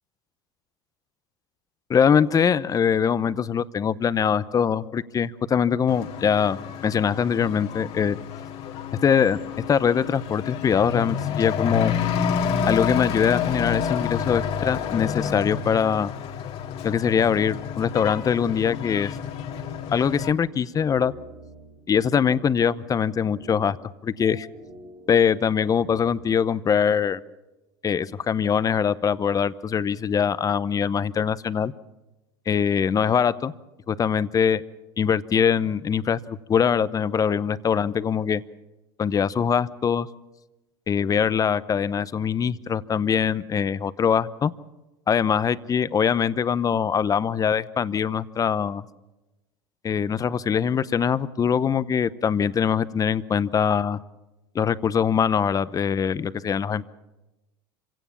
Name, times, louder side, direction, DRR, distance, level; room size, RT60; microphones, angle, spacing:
voice 1, 1.9-6.6 6.8-8.2 9.0-9.4 9.7-11.9 12.7-16.1 16.8-19.2 19.9-21.1 21.9-23.8 24.0-24.5 25.1-27.2 27.8-31.7 32.5-33.5 33.9-34.6 35.0-38.4 39.0-40.1 40.9-44.5 45.1-48.8 49.8-54.0 54.5-56.8, left 7 dB, 30° left, 16 dB, 0.8 m, -22 dB
Truck / Accelerating revving vroom, 5.9-20.3, left 7 dB, 55° left, 2.0 m, -29 dB
sound 1, 18.2-26.4, right 2 dB, 75° right, 6.5 m, -47 dB
26.5 x 16.5 x 7.2 m, 1.0 s
hypercardioid pair, 95°, 13 cm